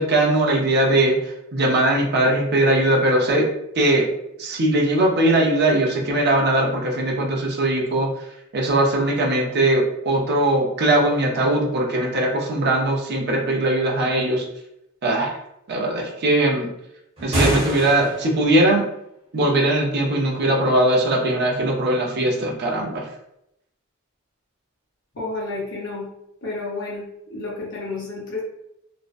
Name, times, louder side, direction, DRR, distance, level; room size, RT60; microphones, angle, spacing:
voice 1, 0.0-3.5 3.7-4.1 4.4-8.1 8.5-14.4 15.0-15.4 15.7-16.7 17.2-18.8 19.3-23.1, right 1 dB, 50° right, 0 dB, 0.6 m, -20 dB
sound 1, 17.2-18.5, equal, 30° right, 1.0 m, -24 dB
voice 2, 25.1-26.1 26.4-28.4, left 3 dB, 60° left, -6 dB, 0.7 m, -31 dB
2.5 x 2.1 x 2.4 m, 0.81 s
head